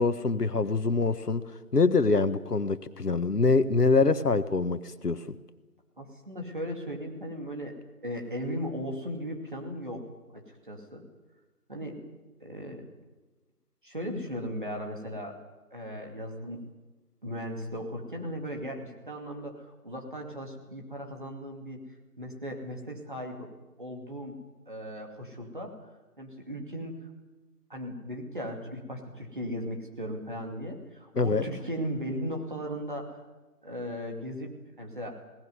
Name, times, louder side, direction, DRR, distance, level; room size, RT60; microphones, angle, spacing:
voice 1, 0.0-1.4 1.7-5.3 31.1-31.4, left 3 dB, 80° left, 11 dB, 1.5 m, -24 dB
voice 2, 6.0-7.7 8.0-10.0 10.3-11.0 11.7-12.0 12.4-12.9 13.8-15.4 15.7-16.6 17.2-21.8 22.2-23.5 23.8-24.4 24.7-25.9 26.2-26.9 27.7-33.2 33.6-35.2, equal, 35° right, 2 dB, 2.6 m, -37 dB
20.0 x 18.0 x 9.6 m, 1.2 s
figure-of-eight pair, 180°, 46 cm